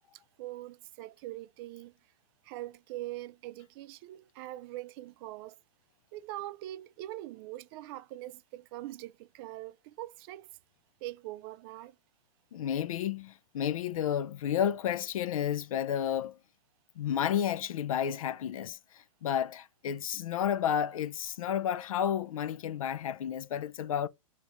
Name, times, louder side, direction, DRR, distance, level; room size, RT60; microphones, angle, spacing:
voice 1, 0.4-1.9 2.4-5.6 6.1-10.5 11.0-11.9, right 16 dB, 45° right, 0.4 m, -42 dB
voice 2, 12.5-16.4 17.0-24.1, left 9 dB, 75° left, 0.4 m, -31 dB
3.0 x 2.8 x 3.4 m
hypercardioid pair, 120°, 18 cm